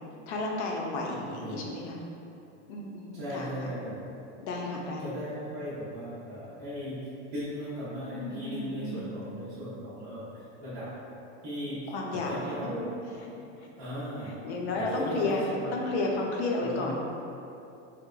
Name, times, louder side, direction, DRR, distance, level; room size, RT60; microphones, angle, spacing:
voice 1, 0.3-2.0 2.7-3.5 4.4-5.1 8.1-9.2 11.9-12.3 12.8-12.9 13.2-13.3 13.6-13.7 14.3-16.9, left 2 dB, 70° left, -1 dB, 0.6 m, -32 dB
voice 2, 1.1-1.6 3.1-4.0 5.0-10.9 11.4-12.9 13.8-14.4 14.7-15.7 16.6-16.9, equal, 25° right, -14 dB, 0.4 m, -37 dB
3.8 x 2.1 x 2.3 m, 2.8 s
supercardioid pair, 180°, 35 cm